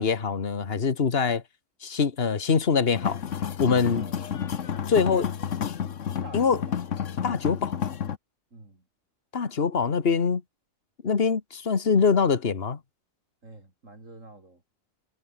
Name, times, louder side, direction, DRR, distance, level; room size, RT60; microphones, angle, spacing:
voice 1, 0.0-1.4 1.8-3.2 3.6-4.0 4.9-5.3 6.3-6.6 7.2-7.8 9.3-10.4 11.0-12.8, left 5 dB, 45° left, 1.8 m, -23 dB
sound 1, 2.9-8.2, left 8 dB, 65° left, 1.4 m, -31 dB
voice 2, 3.9-4.4 4.8-5.3 6.2-6.6 8.5-8.8 13.4-14.6, right 2 dB, 70° right, 5.5 m, -47 dB
omnidirectional pair, 1.4 m